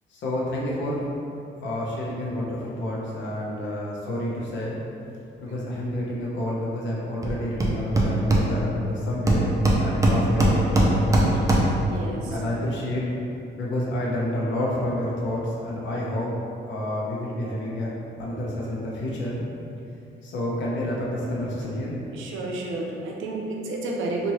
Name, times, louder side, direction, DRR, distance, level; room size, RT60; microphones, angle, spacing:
voice 1, 0.1-1.0 1.6-4.8 5.4-11.6 12.3-13.0 13.6-16.3 16.7-17.9 18.2-19.4 20.2-21.9, left 1 dB, 70° left, -5 dB, 0.8 m, -29 dB
Hammer, 7.2-7.3 7.6-8.9 9.3-11.9, right 1 dB, 15° right, 0.5 m, -20 dB
voice 2, 11.7-12.4 22.1-24.3, right 2 dB, 85° right, -1 dB, 0.5 m, -31 dB
3.0 x 2.6 x 3.0 m, 2.7 s
cardioid pair, 90°, 20 cm